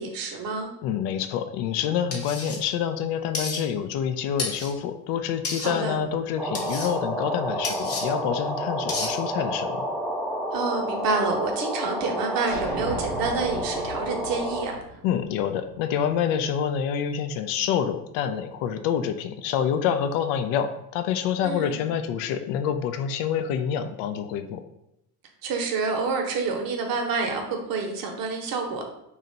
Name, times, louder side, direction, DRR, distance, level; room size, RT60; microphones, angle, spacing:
voice 1, 0.0-0.7 5.6-6.0 10.5-14.8 21.4-21.9 25.4-28.8, right 4 dB, 45° right, 3 dB, 0.9 m, -28 dB
voice 2, 0.8-9.8 15.0-24.6, left 8 dB, 55° left, 9 dB, 0.5 m, -27 dB
sound 1, 2.1-2.6 3.3-3.6 4.4-4.7 5.4-5.7 6.5-6.9 7.6-8.0 8.9-9.1, left 3 dB, 30° left, 1.0 m, -31 dB
sound 2, 6.4-14.7, equal, ahead, 0.4 m, -30 dB
sound 3, 12.5-16.2, right 2 dB, 75° right, 0.8 m, -38 dB
2.8 x 2.4 x 4.1 m, 0.84 s
hypercardioid pair, 60°, 48 cm